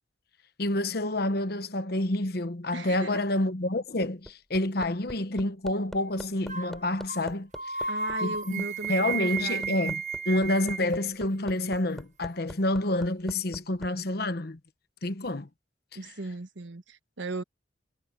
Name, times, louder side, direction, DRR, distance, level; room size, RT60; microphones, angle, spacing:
voice 1, 0.6-7.9 8.2-14.6 15.0-15.5 16.0-16.1, left 1 dB, 55° left, 1.2 m, -28 dB
voice 2, 2.7-3.2 7.9-9.8 15.9-17.4, right 2 dB, 80° right, 1.3 m, -37 dB
Hammer, 4.0-13.9 15.3-15.4, equal, ahead, 3.7 m, -43 dB
sound 1, 6.5-6.7 7.1-7.2 7.5-10.9, right 5 dB, 40° right, 1.4 m, -33 dB
head